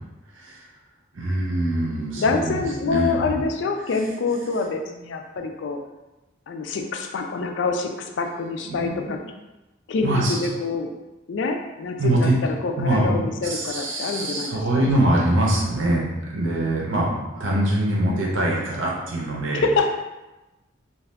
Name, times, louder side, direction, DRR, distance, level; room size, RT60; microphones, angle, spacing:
voice 1, 0.3-0.6 1.1-3.4 8.3-9.2 10.0-10.5 12.0-12.3 12.8-19.6, right 1 dB, 70° right, -3 dB, 0.7 m, -24 dB
voice 2, 2.1-5.8 6.5-9.2 9.9-10.9 11.3-14.9 19.5-19.9, left 4 dB, 60° left, 4 dB, 0.3 m, -26 dB
2.6 x 2.4 x 3.3 m, 1.0 s
head